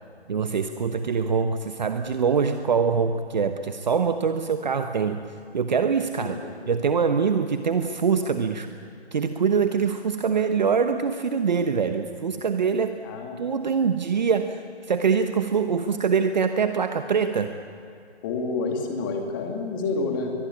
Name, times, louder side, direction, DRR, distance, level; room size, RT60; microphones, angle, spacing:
voice 1, 0.3-5.2 5.5-6.3 6.7-8.7 9.1-13.0 13.4-14.6 14.9-17.5, right 6 dB, 40° right, 8 dB, 1.1 m, -24 dB
voice 2, 6.2-6.5 13.0-13.4 18.2-20.3, left 3 dB, 20° left, 2 dB, 2.6 m, -29 dB
22.5 x 20.5 x 9.6 m, 2.5 s
figure-of-eight pair, 160°, 33 cm